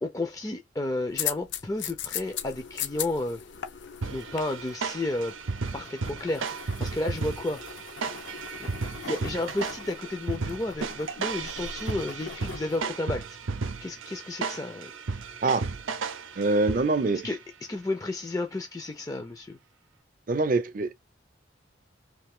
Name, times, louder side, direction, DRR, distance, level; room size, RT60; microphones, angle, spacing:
voice 1, 0.0-3.4 4.0-5.3 5.7-7.6 8.6-13.4 13.8-14.9 15.2-15.3 17.2-19.6, left 2 dB, 15° left, 0.4 m, -32 dB
sound 1, 1.1-12.9, left 9 dB, 70° left, 0.5 m, -39 dB
sound 2, 4.0-17.2, right 4 dB, 90° right, 0.6 m, -34 dB
voice 2, 16.4-17.3 20.3-20.9, right 3 dB, 45° right, 0.4 m, -24 dB
3.2 x 2.6 x 3.6 m
head